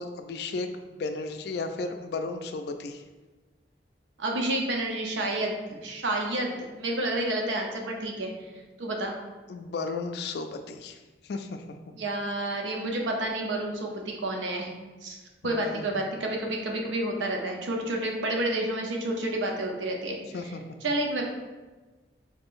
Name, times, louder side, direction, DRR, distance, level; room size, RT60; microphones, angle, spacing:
voice 1, 0.0-3.0 9.5-11.0 11.2-11.9 15.4-15.9 20.3-20.6, left 3 dB, 60° left, 6 dB, 0.3 m, -34 dB
voice 2, 4.2-8.3 8.8-9.1 11.9-14.7 15.0-20.2 20.8-21.2, right 1 dB, 85° right, 1 dB, 0.7 m, -30 dB
4.2 x 3.6 x 2.5 m, 1.2 s
head